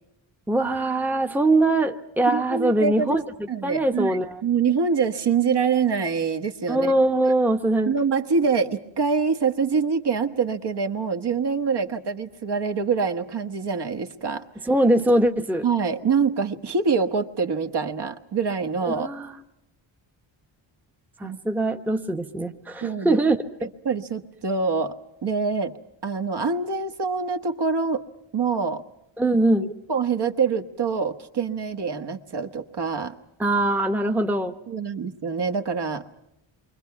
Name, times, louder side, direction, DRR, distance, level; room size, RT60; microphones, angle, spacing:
voice 1, 0.5-4.4 6.7-7.9 14.6-15.6 19.0-19.4 21.2-23.7 29.2-29.7 33.4-34.5, right 2 dB, 5° right, 5 dB, 0.9 m, -22 dB
voice 2, 2.3-3.2 3.5-6.9 7.9-14.4 15.6-19.1 21.2-21.4 22.8-23.2 23.8-24.9 25.2-25.7 26.0-28.0 28.3-28.8 29.6-33.1 34.7-36.1, right 5 dB, 55° right, 6 dB, 1.4 m, -25 dB
28.5 x 23.5 x 5.8 m, 0.85 s
wide cardioid pair, 125°, 48 cm